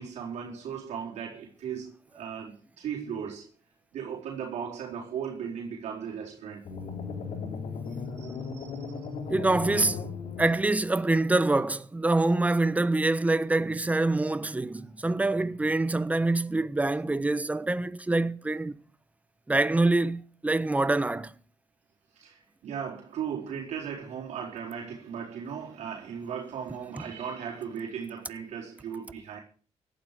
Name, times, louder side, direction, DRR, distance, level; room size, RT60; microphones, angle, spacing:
voice 1, 0.0-3.5 3.9-6.7 7.9-9.0 22.1-29.4, right 7 dB, 80° right, 4.5 m, -37 dB
sound 1, 6.6-10.9, left 5 dB, 70° left, 3.9 m, -37 dB
voice 2, 9.3-10.1 10.4-18.8 19.5-21.3, right 2 dB, 10° right, 1.0 m, -25 dB
17.5 x 12.0 x 5.1 m
cardioid pair, 110°, 12 cm